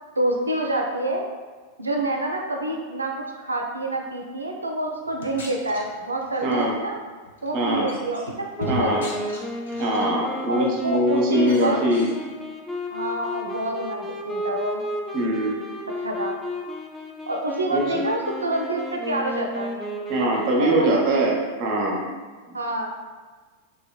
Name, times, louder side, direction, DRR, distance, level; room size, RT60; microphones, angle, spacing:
voice 1, 0.2-1.2 1.8-7.0 7.4-9.3 10.5-11.8 12.9-14.8 16.0-16.3 17.3-19.7 20.5-21.0 22.5-22.9, right 1 dB, 80° right, 1 dB, 0.4 m, -27 dB
sound 1, 5.1-6.7 7.3-7.5 7.9-10.2 10.6-11.0 11.4-12.2, left 1 dB, 65° left, 0.5 m, -37 dB
voice 2, 6.4-6.7 7.5-7.9 8.7-9.0 9.8-12.1 15.1-15.6 17.7-18.0 20.1-22.0, right 1 dB, 45° right, -2 dB, 0.6 m, -22 dB
Wind instrument woodwind instrument, 8.5-21.0, left 1 dB, 10° left, 0.3 m, -33 dB
2.9 x 2.6 x 2.3 m, 1.4 s
figure-of-eight pair, 90°, 0 cm